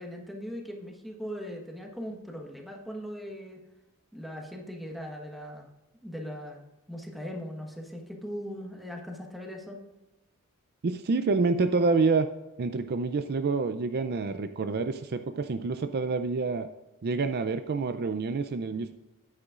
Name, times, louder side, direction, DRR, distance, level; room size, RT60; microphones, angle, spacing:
voice 1, 0.0-3.6 4.1-5.7 6.0-9.8, equal, ahead, 1 dB, 1.3 m, -39 dB
voice 2, 10.8-12.3 12.6-16.7 17.0-18.9, right 4 dB, 45° right, 9 dB, 0.4 m, -27 dB
9.8 x 9.3 x 2.5 m, 1.0 s
head